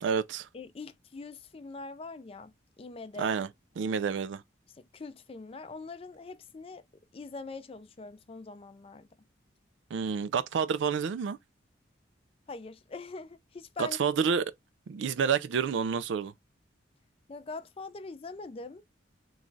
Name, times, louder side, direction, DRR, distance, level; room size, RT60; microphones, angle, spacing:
voice 1, 0.0-0.5 3.2-3.5 3.8-4.4 9.9-11.4 13.8-14.5 14.9-16.3, right 6 dB, 75° right, 0.4 m, -29 dB
voice 2, 0.5-3.3 4.7-6.8 7.1-9.1 12.5-14.0 17.3-18.8, left 3 dB, 30° left, 0.4 m, -43 dB
3.1 x 2.3 x 3.8 m
head